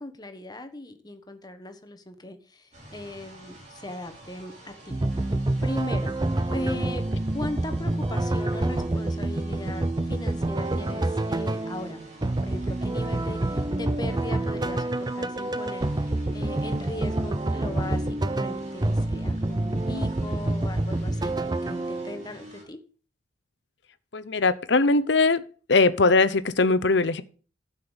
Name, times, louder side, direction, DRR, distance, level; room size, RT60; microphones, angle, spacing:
voice 1, 0.0-5.0 5.6-6.1 6.5-7.1 7.3-12.0 12.4-22.8, left 1 dB, 20° left, 7 dB, 1.3 m, -38 dB
sound 1, 2.7-22.6, right 1 dB, 35° right, 4.7 m, -48 dB
sound 2, 4.9-22.2, right 2 dB, 20° right, 0.5 m, -27 dB
voice 2, 24.1-25.4 25.7-27.2, left 3 dB, 65° left, 14 dB, 0.8 m, -20 dB
11.5 x 5.3 x 8.1 m, 0.40 s
head